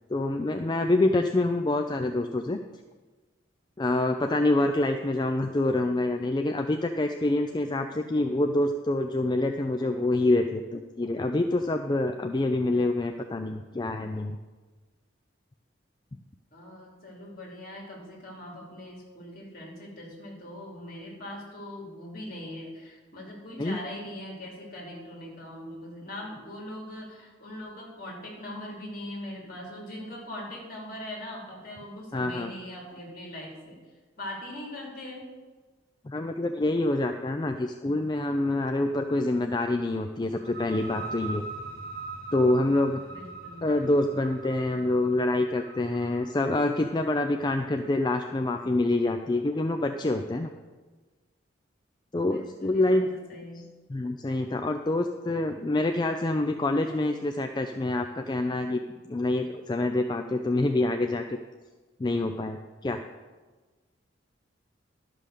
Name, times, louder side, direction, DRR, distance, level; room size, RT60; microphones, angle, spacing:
voice 1, 0.1-2.6 3.8-14.4 23.6-23.8 32.1-32.5 36.0-41.5 42.3-43.0 43.6-50.5 52.1-53.1 53.9-58.8 59.1-61.2 62.0-63.0, left 2 dB, 25° left, 6 dB, 0.4 m, -26 dB
voice 2, 16.5-33.8 34.2-35.3 43.1-43.7 52.2-53.6, left 1 dB, 50° left, -2 dB, 3.0 m, -41 dB
sound 1, 40.4-47.9, right 3 dB, 60° right, 1.4 m, -42 dB
12.0 x 5.6 x 6.6 m, 1.3 s
head